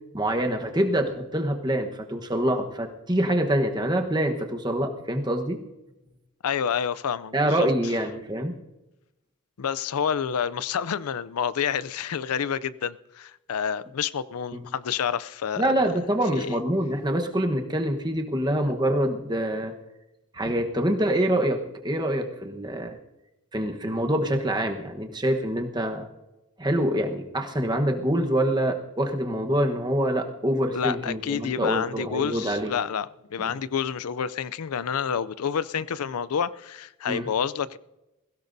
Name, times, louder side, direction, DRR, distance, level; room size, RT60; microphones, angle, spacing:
voice 1, 0.1-5.6 7.3-8.6 14.5-14.6 15.6-19.7 20.3-23.0 23.5-26.1 26.6-32.7 33.4-33.5 37.1-37.3, right 1 dB, 20° right, 1.1 m, -25 dB
voice 2, 6.4-7.7 9.6-15.7 16.3-16.6 30.7-37.8, left 7 dB, 85° left, 0.5 m, -29 dB
22.0 x 16.0 x 2.7 m
head